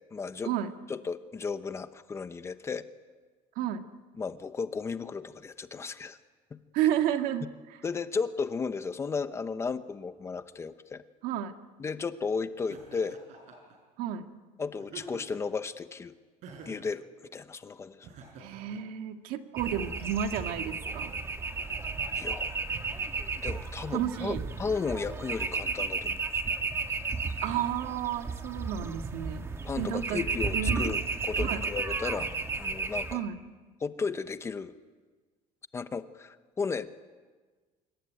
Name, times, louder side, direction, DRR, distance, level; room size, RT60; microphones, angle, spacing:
voice 1, 0.1-0.5 0.9-2.8 4.2-6.2 6.5-6.6 7.8-11.0 11.8-13.2 14.6-16.1 16.7-18.1 22.1-22.5 23.4-26.6 29.6-31.0 31.3-33.2 33.8-34.7 35.7-36.9, left 5 dB, 20° left, 11 dB, 0.9 m, -34 dB
voice 2, 3.6-3.9 6.7-7.8 11.2-11.5 14.0-14.3 18.4-21.1 23.9-24.4 27.4-29.5 29.8-30.2 30.5-31.0 31.4-31.6 33.1-33.4, right 10 dB, 80° right, 7 dB, 1.9 m, -31 dB
Laughter, 12.7-13.8 14.8-15.5 16.4-16.9 18.0-18.8, right 5 dB, 55° right, 6.2 m, -48 dB
sound 1, 19.6-33.1, right 4 dB, 20° right, 1.4 m, -33 dB
26.0 x 23.5 x 9.2 m, 1.4 s
cardioid pair, 175°, 14 cm